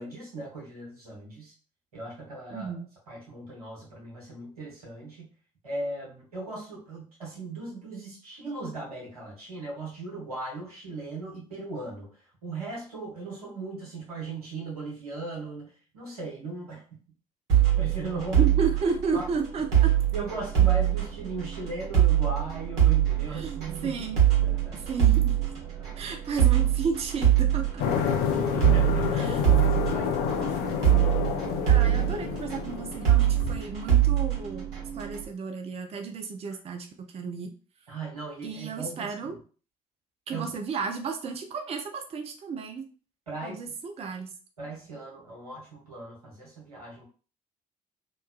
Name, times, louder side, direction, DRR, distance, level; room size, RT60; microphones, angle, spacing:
voice 1, 0.0-1.5 1.9-2.8 3.1-5.3 5.6-12.1 12.4-17.0 17.8-18.5 19.1-19.2 20.1-24.1 24.4-24.9 25.8-26.0 28.0-30.8 37.9-39.4 40.3-40.6 43.3-43.8 44.6-47.0, right 3 dB, 85° right, -4 dB, 0.9 m, -38 dB
voice 2, 2.5-2.9 18.4-19.9 23.3-24.2 24.7-25.3 26.0-27.8 29.1-29.4 31.7-34.7 34.9-37.5 38.4-39.3 40.3-42.9 43.4-44.3, right 5 dB, 35° right, 4 dB, 0.5 m, -33 dB
sound 1, 17.5-35.2, right 11 dB, 65° right, 1.2 m, -24 dB
sound 2, 27.8-33.6, left 7 dB, 60° left, 0.5 m, -29 dB
3.0 x 2.2 x 2.3 m, 0.39 s
figure-of-eight pair, 50°, 19 cm